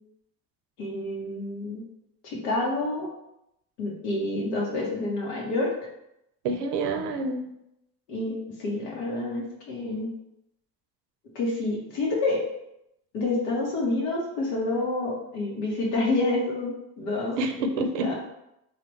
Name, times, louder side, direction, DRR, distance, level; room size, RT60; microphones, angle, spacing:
voice 1, 0.8-1.8 2.2-3.1 3.8-5.7 8.1-10.1 11.3-12.4 13.1-17.4 17.7-18.1, left 2 dB, 80° left, -2 dB, 1.1 m, -28 dB
voice 2, 6.4-7.4 17.4-18.1, right 2 dB, 65° right, 5 dB, 0.6 m, -27 dB
3.3 x 2.4 x 3.2 m, 0.83 s
hypercardioid pair, 60°, 46 cm